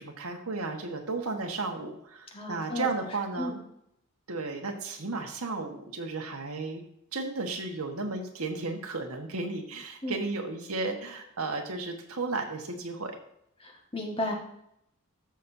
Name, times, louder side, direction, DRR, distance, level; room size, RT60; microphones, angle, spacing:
voice 1, 0.0-3.5 4.3-6.8 7.1-13.2, right 3 dB, 85° right, 3 dB, 1.5 m, -34 dB
voice 2, 2.3-2.9 3.4-3.6 10.0-10.2 13.6-14.3, left 1 dB, 25° left, 1 dB, 1.6 m, -33 dB
13.0 x 6.3 x 2.7 m, 0.75 s
head